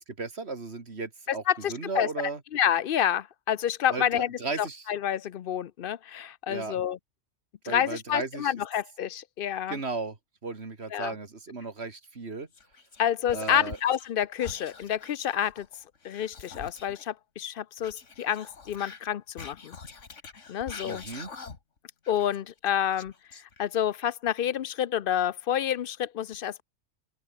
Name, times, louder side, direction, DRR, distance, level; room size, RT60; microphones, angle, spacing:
voice 1, 0.0-2.4 3.9-4.8 6.5-6.8 7.7-8.5 9.7-10.2 10.4-12.5 13.3-13.8 20.9-21.3, right 3 dB, 55° right, 2.6 m, -35 dB
voice 2, 1.3-2.1 2.5-7.0 7.6-9.8 10.9-11.1 13.0-15.7 16.0-19.8 20.5-21.0 22.1-23.1 23.6-26.6, left 10 dB, 55° left, 0.7 m, -28 dB
Whispering, 12.5-14.1 14.4-17.0 17.8-21.8 22.0-23.9, left 4 dB, 75° left, 2.4 m, -45 dB
open air
omnidirectional pair, 1.3 m